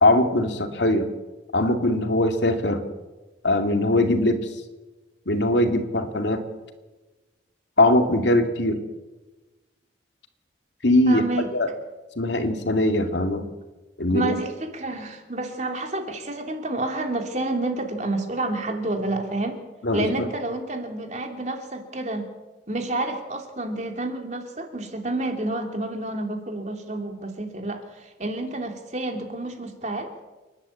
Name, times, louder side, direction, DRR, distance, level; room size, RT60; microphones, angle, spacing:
voice 1, 0.0-1.1 1.5-2.8 3.4-4.4 5.3-6.4 7.8-8.8 10.8-11.2 11.5-11.7 12.2-13.4 14.0-14.3 19.8-20.3, left 1 dB, 75° left, 5 dB, 2.5 m, -21 dB
voice 2, 11.1-11.5 14.1-19.6 19.9-22.3 22.7-30.1, right 2 dB, 40° right, 4 dB, 3.0 m, -29 dB
28.5 x 11.5 x 8.5 m, 1.2 s
head